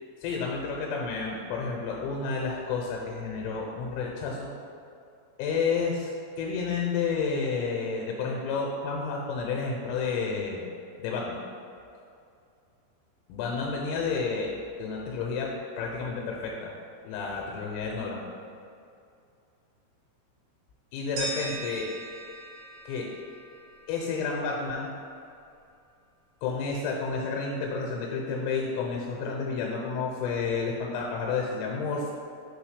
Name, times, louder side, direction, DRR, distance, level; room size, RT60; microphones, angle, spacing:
voice 1, 0.2-4.5 5.4-6.1 6.4-10.6 11.0-11.4 13.3-14.5 14.8-16.7 17.0-18.2 20.9-21.9 22.9-23.1 23.9-24.9 26.4-32.1, left 4 dB, 85° left, -1 dB, 3.3 m, -30 dB
sound 1, 21.2-24.1, right 2 dB, 85° right, 1.9 m, -39 dB
7.1 x 3.5 x 4.8 m, 2.5 s
omnidirectional pair, 5.9 m